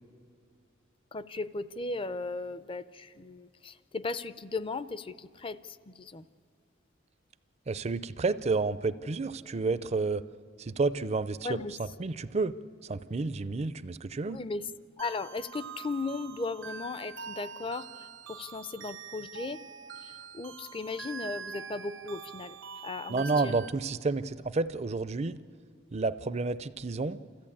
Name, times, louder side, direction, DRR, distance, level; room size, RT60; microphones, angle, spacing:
voice 1, 1.1-6.3 11.4-11.7 14.3-14.7 15.0-19.7 20.0-23.5, left 3 dB, 25° left, 15 dB, 0.5 m, -37 dB
voice 2, 7.7-10.2 10.6-11.6 12.0-12.5 12.8-14.4 23.1-25.4 25.9-27.2, right 3 dB, 35° right, 15 dB, 0.5 m, -30 dB
sound 1, 15.0-23.7, right 6 dB, 65° right, 0.7 m, -44 dB
29.0 x 14.0 x 8.6 m, 2.4 s
head